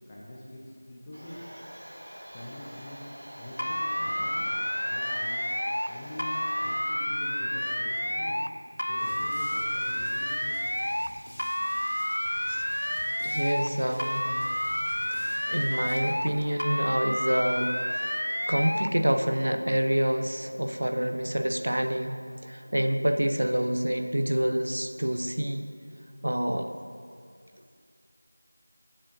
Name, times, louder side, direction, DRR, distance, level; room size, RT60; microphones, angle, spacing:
voice 1, 0.1-0.6 0.9-1.4 2.3-4.6 4.8-5.5 5.9-8.4 8.8-10.6, left 1 dB, 10° left, -5 dB, 0.5 m, -44 dB
Domestic sounds home sounds, 1.1-6.8, equal, 35° right, 2.0 m, -45 dB
sound 1, 3.6-5.9 6.2-8.5 8.8-11.1 11.4-13.7 14.0-16.3 16.6-18.9, equal, 80° left, 0.4 m, -30 dB
sound 2, 9.0-16.6, equal, 65° left, 2.5 m, -49 dB
voice 2, 13.2-14.3 15.1-18.1 18.5-25.7 26.2-26.7, equal, 60° right, 6 dB, 0.6 m, -27 dB
14.5 x 7.4 x 2.6 m, 2.3 s
figure-of-eight pair, 175°, 0 cm